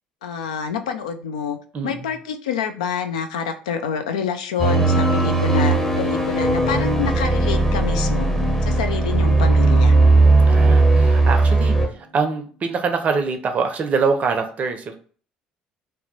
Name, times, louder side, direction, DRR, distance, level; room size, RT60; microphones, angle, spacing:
voice 1, 0.2-1.6 1.8-8.3 8.6-9.9, left 7 dB, 70° left, 7 dB, 0.3 m, -27 dB
voice 2, 1.7-2.1 10.5-14.9, right 5 dB, 35° right, 6 dB, 0.5 m, -24 dB
sound 1, 4.6-11.9, right 3 dB, 10° left, 0.7 m, -17 dB
Piano, 4.7-12.5, left 3 dB, 50° left, 1.2 m, -33 dB
2.7 x 2.1 x 4.0 m, 0.43 s
figure-of-eight pair, 55°, 4 cm